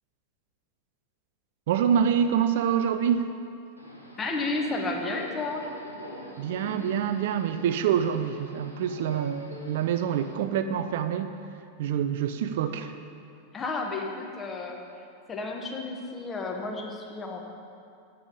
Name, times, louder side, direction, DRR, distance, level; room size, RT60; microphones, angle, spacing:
voice 1, 1.7-3.3 6.4-11.3 11.8-12.9, right 8 dB, 55° right, 9 dB, 0.4 m, -26 dB
Subway metro underground, 3.8-10.4, right 1 dB, 90° left, 1.1 m, -43 dB
voice 2, 4.2-5.6 13.5-14.8 15.3-17.4, left 3 dB, 20° left, 1 dB, 1.1 m, -32 dB
8.3 x 6.9 x 5.2 m, 2.5 s
figure-of-eight pair, 90°, 0 cm